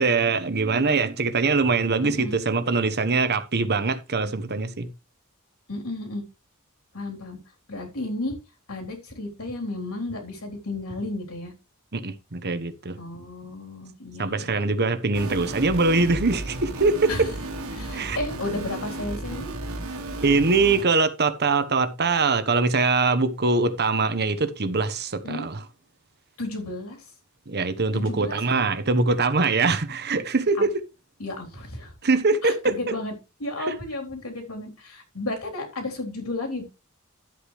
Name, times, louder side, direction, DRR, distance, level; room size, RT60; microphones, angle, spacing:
voice 1, 0.0-4.9 11.9-13.0 14.2-17.1 17.9-18.2 20.2-25.6 27.5-30.8 32.0-32.9 33.7-33.8, right 3 dB, 50° right, 1.1 m, -23 dB
voice 2, 2.0-2.4 4.2-4.3 5.7-6.2 6.9-7.4 7.7-8.4 8.7-11.5 13.0-14.5 17.1-17.3 17.7-19.5 25.2-25.5 26.4-27.1 27.9-28.6 31.2-31.9 32.4-33.1 33.4-36.7, left 2 dB, 75° left, 3.7 m, -33 dB
sound 1, 15.1-20.8, right 2 dB, 80° right, 2.1 m, -34 dB
12.0 x 8.3 x 3.2 m
head